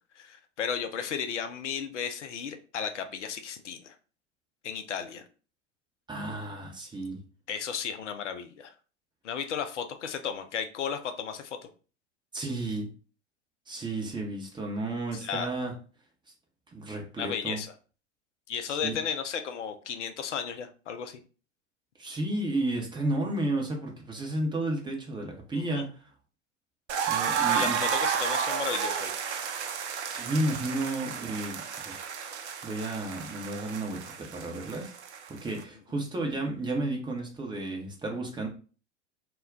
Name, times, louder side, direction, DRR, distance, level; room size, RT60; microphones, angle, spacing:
voice 1, 0.2-3.9 4.6-5.2 7.5-8.7 9.2-11.6 15.2-15.5 17.2-17.7 18.5-21.2 25.6-25.9 27.5-29.1, left 7 dB, 75° left, 8 dB, 0.5 m, -34 dB
voice 2, 6.1-7.2 12.3-12.9 13.7-15.7 16.7-17.6 18.8-18.9 22.0-26.0 27.1-27.8 30.1-32.0 32.6-34.9 35.3-38.5, right 2 dB, 15° right, 0 dB, 0.7 m, -32 dB
sound 1, 26.9-35.6, right 7 dB, 70° right, 0.6 m, -32 dB
2.3 x 2.1 x 3.6 m, 0.37 s
figure-of-eight pair, 85°, 36 cm